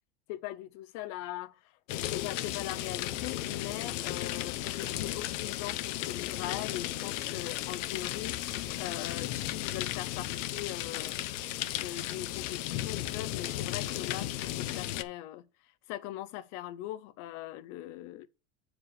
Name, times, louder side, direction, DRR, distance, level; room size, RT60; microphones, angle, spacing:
voice 1, 0.3-1.8 2.1-11.2 11.7-18.3, left 14 dB, 55° left, 0.6 m, -41 dB
sound 1, 1.9-15.0, left 14 dB, 75° left, 0.9 m, -35 dB
6.9 x 4.9 x 6.6 m
supercardioid pair, 125°, 37 cm